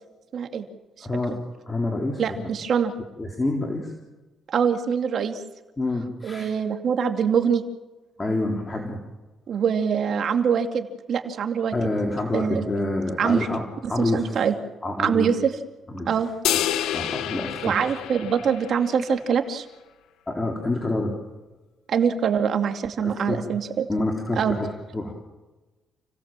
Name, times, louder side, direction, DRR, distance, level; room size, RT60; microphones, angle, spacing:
voice 1, 0.3-0.7 1.0-1.1 2.2-2.9 4.5-5.4 6.2-7.6 9.5-11.7 12.3-12.6 13.2-13.5 13.8-14.5 15.0-15.5 16.1-16.3 17.6-19.7 21.9-23.9 24.4-24.6, right 7 dB, 60° right, 6 dB, 2.5 m, -24 dB
voice 2, 1.0-1.3 1.7-2.5 3.2-3.9 5.8-6.5 8.2-9.0 11.7-13.6 13.9-14.4 14.8-15.3 15.9-16.1 16.9-17.8 20.3-21.1 23.0-23.4 23.9-25.1, left 2 dB, 20° left, 1 dB, 3.8 m, -27 dB
sound 1, 16.4-19.0, left 11 dB, 85° left, 1.0 m, -28 dB
29.5 x 17.0 x 7.5 m, 1.1 s
cardioid pair, 90°, 0 cm